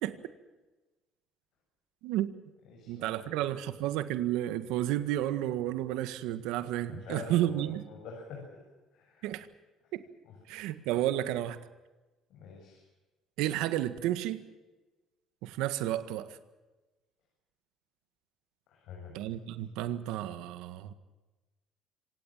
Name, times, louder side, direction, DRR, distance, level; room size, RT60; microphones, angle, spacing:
voice 1, 2.0-2.3 2.9-7.8 9.2-9.5 9.9-10.0 10.5-11.6 13.4-14.4 15.4-16.4 19.1-20.9, right 13 dB, 85° right, 11 dB, 1.7 m, -31 dB
voice 2, 2.6-3.4 6.9-8.6 8.9-9.2 9.8-9.9 10.2-10.6 12.3-12.8 18.7-19.1, left 4 dB, 60° left, 0 dB, 7.3 m, -46 dB
26.5 x 18.0 x 7.5 m, 1.1 s
cardioid pair, 160°, 0 cm